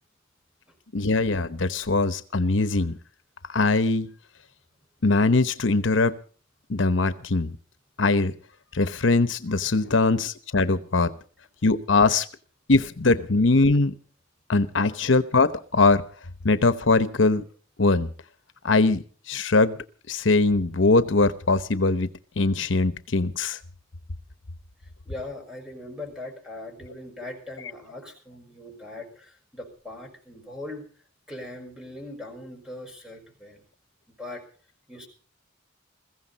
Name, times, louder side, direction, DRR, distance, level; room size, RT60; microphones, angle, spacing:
voice 1, 0.9-3.0 3.5-4.1 5.0-6.2 6.7-7.6 8.0-8.3 8.7-11.1 11.6-12.3 12.7-13.9 14.5-16.0 16.4-17.4 17.8-18.1 18.6-19.8 20.1-22.1 22.4-23.6, left 3 dB, 70° left, 0.9 m, -21 dB
voice 2, 24.8-30.9 31.3-33.6 34.2-34.4 34.9-35.1, left 2 dB, 5° right, 5.8 m, -40 dB
21.5 x 15.5 x 4.1 m
head